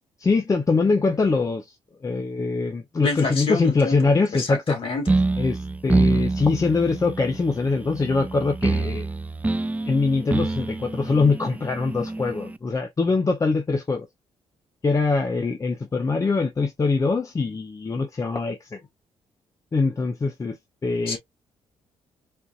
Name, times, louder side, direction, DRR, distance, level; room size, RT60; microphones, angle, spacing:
voice 1, 0.2-1.8 2.0-4.8 5.4-9.1 9.8-14.1 14.8-18.8 19.7-20.6 20.8-21.2, left 4 dB, 30° left, 0.7 m, -23 dB
voice 2, 3.0-5.1 21.1-21.2, left 3 dB, 50° left, 2.5 m, -28 dB
sound 1, 5.1-12.6, right 3 dB, 15° right, 0.3 m, -26 dB
4.4 x 2.5 x 2.4 m
cardioid pair, 85°, 12 cm